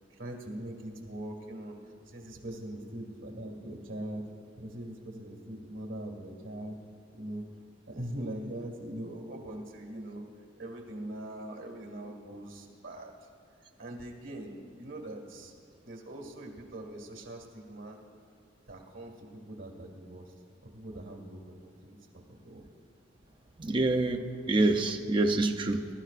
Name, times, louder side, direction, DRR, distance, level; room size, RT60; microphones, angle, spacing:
voice 1, 0.1-1.8 2.1-4.2 4.6-6.8 7.1-7.4 7.9-10.2 10.6-13.1 13.8-15.5 15.8-18.0 18.7-20.3 20.7-22.6, right 1 dB, 80° right, 2 dB, 2.0 m, -42 dB
voice 2, 23.6-25.9, right 2 dB, 25° right, 5 dB, 0.5 m, -27 dB
20.5 x 12.0 x 2.5 m, 2.2 s
head